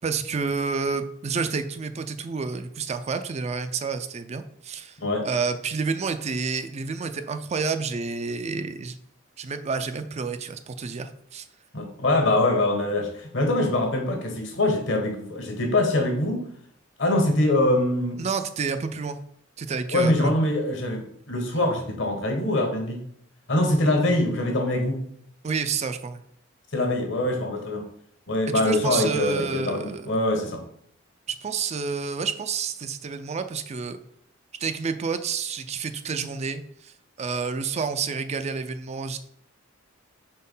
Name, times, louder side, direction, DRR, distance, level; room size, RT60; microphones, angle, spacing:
voice 1, 0.0-5.0 5.2-9.0 9.4-11.5 18.2-19.2 19.6-20.3 25.4-26.2 28.5-30.1 31.3-34.0 34.6-39.2, right 5 dB, 35° right, 9 dB, 0.4 m, -29 dB
voice 2, 11.7-16.5 17.0-18.2 19.9-23.0 23.5-25.1 26.7-27.9 28.3-30.6, left 1 dB, 65° left, 3 dB, 1.3 m, -24 dB
4.4 x 4.0 x 5.4 m, 0.66 s
head